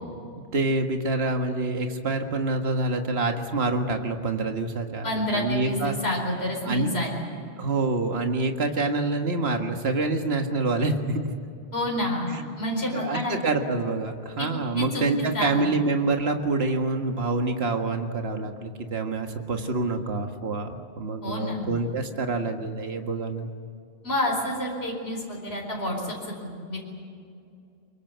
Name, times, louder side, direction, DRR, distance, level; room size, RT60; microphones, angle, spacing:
voice 1, 0.5-6.0 6.6-6.9 7.6-11.2 12.3-12.4 12.9-23.5, right 3 dB, 70° right, 5 dB, 1.9 m, -26 dB
voice 2, 5.0-7.3 11.7-13.4 14.4-14.5 14.8-15.0 15.3-15.7 21.2-21.7 24.0-26.8, left 1 dB, 70° left, -1 dB, 4.8 m, -29 dB
24.0 x 23.5 x 8.0 m, 2.5 s
omnidirectional pair, 1.1 m